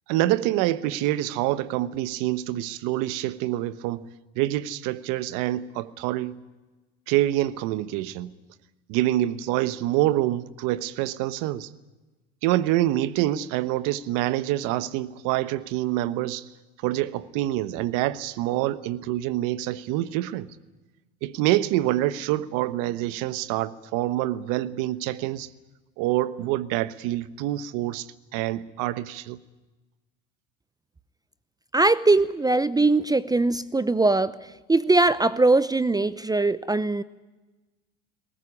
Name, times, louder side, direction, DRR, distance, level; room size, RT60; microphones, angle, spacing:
voice 1, 0.1-4.0 4.4-6.3 7.1-8.3 8.9-11.7 12.4-16.4 16.8-20.5 21.2-25.5 26.0-29.4, right 15 dB, 70° right, 1.2 m, -26 dB
voice 2, 31.7-34.4 34.7-37.0, right 2 dB, 10° right, 0.7 m, -21 dB
20.0 x 18.0 x 9.9 m
hypercardioid pair, 85°, 33 cm